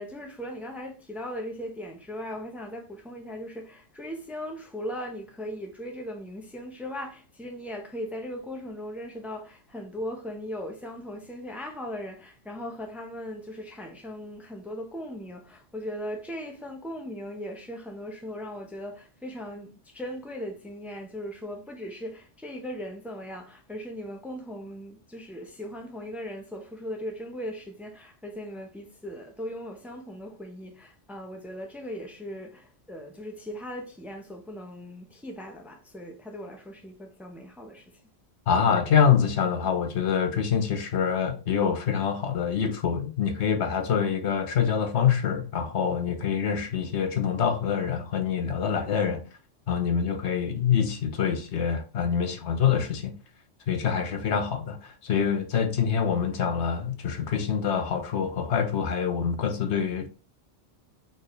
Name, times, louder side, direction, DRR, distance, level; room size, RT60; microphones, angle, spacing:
voice 1, 0.0-38.0, equal, ahead, 0.8 m, -38 dB
voice 2, 38.5-49.2 49.7-53.1 53.7-60.1, left 7 dB, 70° left, 1.0 m, -25 dB
4.3 x 3.8 x 3.2 m
omnidirectional pair, 1.2 m